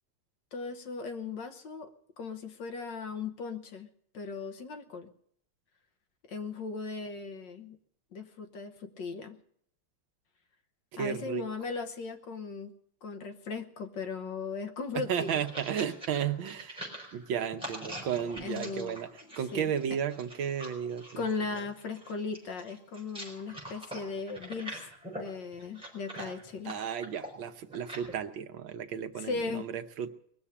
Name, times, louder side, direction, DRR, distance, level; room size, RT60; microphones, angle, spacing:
voice 1, 0.5-3.9 4.1-5.1 6.3-7.8 8.1-9.4 11.0-12.7 13.0-15.4 18.4-19.0 19.5-19.7 21.2-24.9 25.1-26.7 29.3-29.7, left 4 dB, 60° left, 7 dB, 1.7 m, -37 dB
voice 2, 10.9-11.4 14.9-16.9 17.1-19.1 19.4-21.2 26.2-26.3 26.7-30.1, right 8 dB, 70° right, 7 dB, 1.6 m, -33 dB
sound 1, 15.0-28.1, right 1 dB, ahead, 4.8 m, -44 dB
20.5 x 7.1 x 10.0 m, 0.68 s
omnidirectional pair, 2.3 m